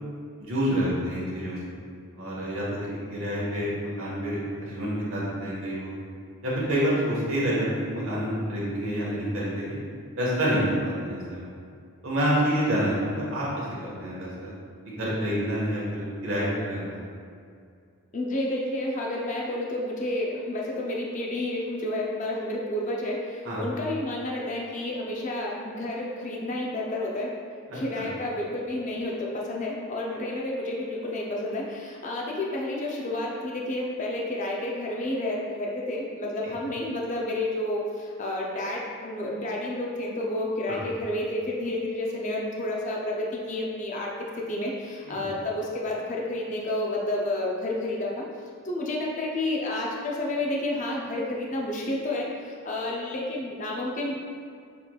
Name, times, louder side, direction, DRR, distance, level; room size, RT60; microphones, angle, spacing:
voice 1, 0.4-1.6 2.2-5.9 6.4-9.8 10.2-11.5 12.0-14.5 14.8-17.1 23.4-23.6 27.7-28.1 30.1-30.2 40.7-40.8 45.0-45.3, equal, 70° right, -6 dB, 1.3 m, -28 dB
voice 2, 18.1-27.4 27.7-48.1 48.6-52.3 52.7-54.1, left 1 dB, 35° left, -2 dB, 0.5 m, -30 dB
6.6 x 3.1 x 2.3 m, 2.3 s
head